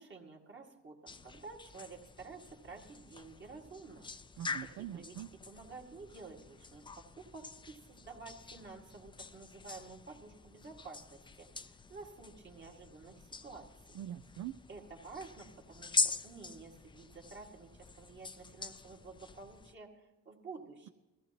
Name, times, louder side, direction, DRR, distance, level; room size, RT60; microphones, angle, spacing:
voice 1, 0.0-4.1 4.8-5.2 5.5-14.0 14.7-20.9, right 4 dB, 40° right, 0 dB, 2.0 m, -51 dB
sound 1, 1.1-19.7, left 4 dB, 15° left, 0.4 m, -43 dB
voice 2, 4.4-5.3 13.9-14.6, right 12 dB, 65° right, 10 dB, 0.5 m, -43 dB
21.0 x 14.5 x 2.9 m, 1.0 s
cardioid pair, 90°, 30 cm